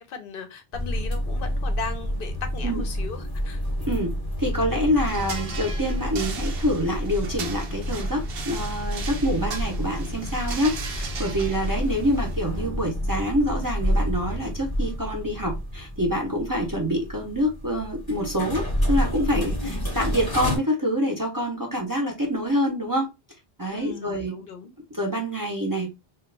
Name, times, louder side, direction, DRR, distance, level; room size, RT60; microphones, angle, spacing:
voice 1, 0.1-3.6 23.7-24.7, left 4 dB, 65° left, 0.7 m, -37 dB
sound 1, 0.7-20.6, equal, 25° left, 0.8 m, -29 dB
voice 2, 3.9-23.1 23.6-24.3 24.9-25.9, equal, 25° right, 0.6 m, -26 dB
sound 2, 5.0-12.4, right 4 dB, 70° right, 0.8 m, -37 dB
2.9 x 2.3 x 3.2 m
omnidirectional pair, 1.0 m